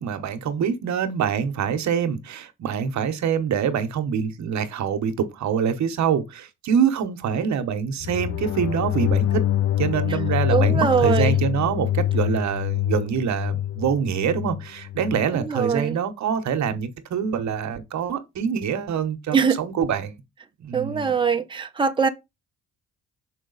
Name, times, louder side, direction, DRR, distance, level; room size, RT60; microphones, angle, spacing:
voice 1, 0.0-9.4 9.8-20.2 20.6-21.1, right 7 dB, 65° right, 1.1 m, -25 dB
sound 1, 8.0-15.3, left 12 dB, 55° left, 0.4 m, -25 dB
voice 2, 10.5-11.3 15.3-16.0 19.3-19.6 20.7-22.1, right 6 dB, 15° right, 0.8 m, -22 dB
6.1 x 4.8 x 3.9 m
cardioid pair, 90°, 30 cm